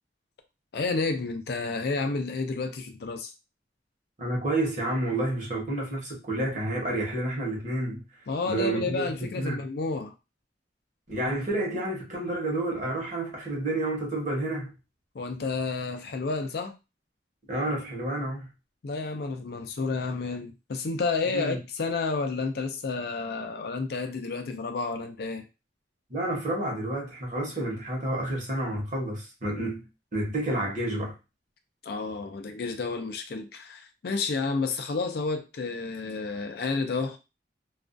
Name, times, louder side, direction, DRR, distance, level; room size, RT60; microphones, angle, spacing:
voice 1, 0.7-3.3 8.3-10.1 15.1-16.7 18.8-25.4 31.8-37.2, left 4 dB, 60° left, 0.4 m, -30 dB
voice 2, 4.2-8.0 8.5-9.1 9.4-9.6 11.1-14.7 17.5-18.5 21.3-21.6 26.1-29.8 30.1-31.2, right 1 dB, 45° right, 0.9 m, -30 dB
2.4 x 2.2 x 2.5 m
head